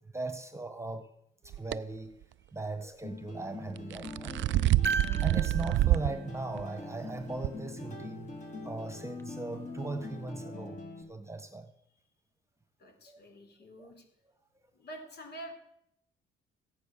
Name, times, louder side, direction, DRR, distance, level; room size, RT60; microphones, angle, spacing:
voice 1, 0.1-1.1 1.4-2.2 2.5-4.4 5.0-8.3 8.6-10.8 11.1-11.7 13.1-13.2 13.8-13.9, right 2 dB, 15° right, 9 dB, 1.4 m, -39 dB
sound 1, 1.5-1.8 3.8-6.1 6.6-6.7 7.4-7.5, right 15 dB, 70° right, 0.5 m, -27 dB
sound 2, 3.0-11.0, left 3 dB, 40° left, 3.6 m, -43 dB
sound 3, 4.8-7.2 9.2-9.3, right 4 dB, 10° left, 1.4 m, -37 dB
voice 2, 12.8-14.0 14.7-15.5, right 1 dB, 55° left, 4 dB, 4.1 m, -47 dB
15.0 x 9.5 x 6.9 m, 0.74 s
cardioid pair, 90°, 20 cm